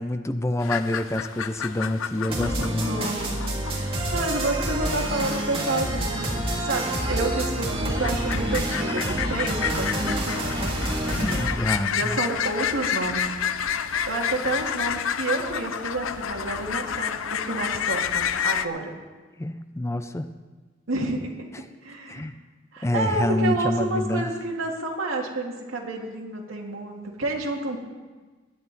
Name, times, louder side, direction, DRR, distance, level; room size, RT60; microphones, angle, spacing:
voice 1, 0.0-3.0 11.2-12.2 19.4-20.3 22.1-22.3 22.8-24.3, left 1 dB, 15° left, 10 dB, 0.4 m, -27 dB
sound 1, 0.6-18.7, left 8 dB, 80° left, 0.5 m, -30 dB
sound 2, 2.3-11.5, right 1 dB, 25° right, 2.4 m, -28 dB
voice 2, 2.4-3.3 3.6-6.4 6.6-10.8 11.0-11.4 11.9-13.3 13.7-18.9 20.9-21.3 21.8-22.3 22.7-27.8, right 2 dB, 80° right, 1 dB, 2.1 m, -30 dB
20.5 x 9.3 x 4.1 m, 1.3 s
head